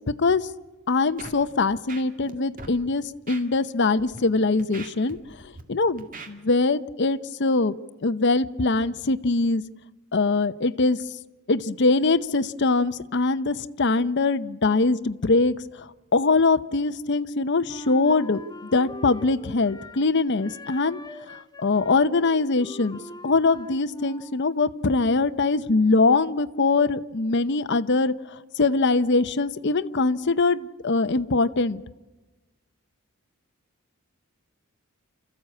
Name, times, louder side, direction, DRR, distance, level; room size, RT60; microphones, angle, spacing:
voice 1, 0.9-5.2 5.4-7.7 8.0-9.6 10.1-11.0 11.5-15.6 16.1-18.4 18.7-21.0 21.6-28.1 28.6-31.8, left 3 dB, 55° left, 12 dB, 0.7 m, -22 dB
Scratching (performance technique), 1.2-1.4 1.7-2.3 2.6-2.8 3.3-3.4 4.0-4.2 4.6-5.6 6.0-6.3, right 3 dB, 40° right, 2.2 m, -40 dB
Wind instrument woodwind instrument, 17.7-20.1 20.4-24.5, left 2 dB, 20° left, 0.7 m, -43 dB
28.5 x 14.5 x 8.4 m, 1.2 s
head